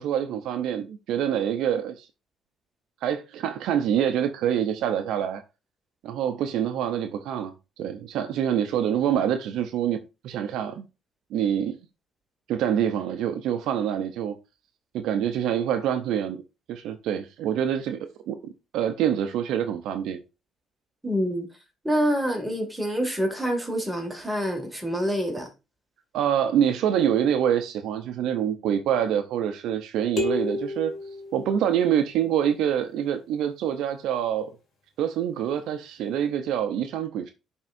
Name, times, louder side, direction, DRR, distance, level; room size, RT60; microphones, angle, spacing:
voice 1, 0.0-2.1 3.0-5.4 6.0-10.9 11.3-11.8 12.5-14.4 14.9-16.4 16.7-18.4 18.7-20.2 26.1-30.9 31.3-34.5 35.0-37.3, right 9 dB, 80° right, 0.6 m, -26 dB
voice 2, 21.0-21.5 21.8-25.5, equal, 5° right, 1.9 m, -26 dB
sound 1, 30.2-32.1, left 3 dB, 55° left, 2.0 m, -32 dB
10.5 x 3.6 x 2.5 m
cardioid pair, 100°, 0 cm